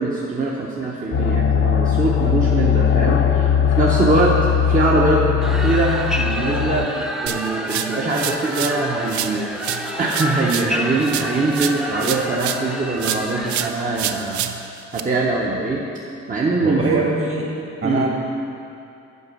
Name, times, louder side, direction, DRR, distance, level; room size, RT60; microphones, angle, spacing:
voice 1, 0.0-4.3 4.7-5.2 5.6-9.5 10.0-14.4 14.9-15.8 16.3-17.0 17.8-18.1, right 3 dB, 25° right, -4 dB, 0.9 m, -22 dB
sound 1, 1.1-6.9, left 8 dB, 50° left, 0.7 m, -19 dB
sound 2, 5.4-13.7, equal, ahead, 0.6 m, -29 dB
sound 3, 7.3-8.8 9.1-12.7 13.0-15.0, right 10 dB, 70° right, 0.5 m, -28 dB
voice 2, 16.6-17.5 17.8-18.1, right 3 dB, 45° right, -2 dB, 2.0 m, -22 dB
8.3 x 4.9 x 6.2 m, 2.7 s
cardioid pair, 90°, 30 cm